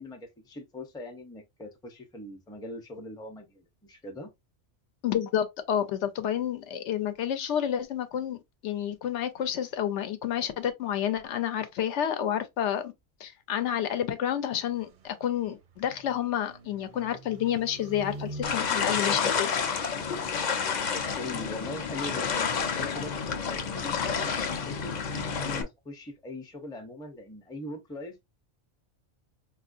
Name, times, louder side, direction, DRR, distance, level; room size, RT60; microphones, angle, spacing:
voice 1, 0.0-4.3 20.9-28.2, left 2 dB, 5° left, 0.4 m, -41 dB
voice 2, 5.0-12.9 13.2-19.5, left 10 dB, 75° left, 0.9 m, -30 dB
sound 1, 14.7-20.2, right 2 dB, 55° right, 0.6 m, -46 dB
sound 2, 18.4-25.6, left 6 dB, 50° left, 0.6 m, -29 dB
4.3 x 2.4 x 2.5 m
omnidirectional pair, 1.2 m